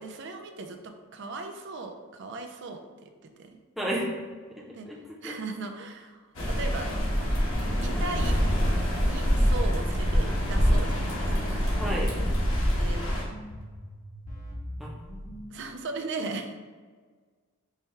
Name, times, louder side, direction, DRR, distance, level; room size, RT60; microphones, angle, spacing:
voice 1, 0.0-3.6 4.7-4.9 5.2-6.2 6.6-6.9 7.8-8.4 9.0-11.7 12.8-13.0 15.5-16.5, right 3 dB, 55° right, 5 dB, 0.4 m, -37 dB
voice 2, 3.8-4.1 4.8-5.0 5.2-5.3 11.8-12.1 14.8-15.3, equal, ahead, -4 dB, 0.6 m, -32 dB
sound 1, 6.4-13.2, equal, 70° left, 1.0 m, -25 dB
sound 2, 11.0-15.5, equal, 35° left, 0.8 m, -41 dB
4.7 x 2.3 x 4.3 m, 1.5 s
head